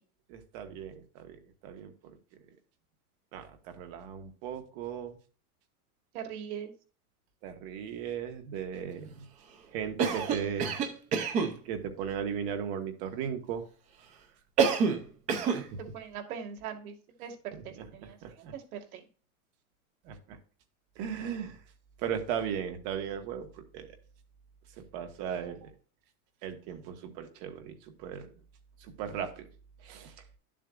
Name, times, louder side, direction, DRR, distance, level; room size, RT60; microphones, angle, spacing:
voice 1, 0.3-1.4 1.6-1.9 3.3-5.2 7.4-9.2 9.7-10.8 11.6-13.6 15.5-15.8 17.5-18.5 20.0-20.4 20.9-21.6 22.0-23.5 23.7-24.0 24.9-25.7 26.4-28.3 28.8-29.5 29.8-30.1, right 8 dB, 40° right, 6 dB, 1.5 m, -37 dB
voice 2, 6.1-6.7 15.8-16.9 17.2-17.3 17.9-18.2 18.5-18.6 18.9-19.0, right 8 dB, 75° right, 4 dB, 2.1 m, -40 dB
Cough, 10.0-11.6 14.6-15.0 15.3-15.7, right 6 dB, 15° right, 0.5 m, -27 dB
11.0 x 7.5 x 2.5 m, 0.38 s
supercardioid pair, 175°, 44 cm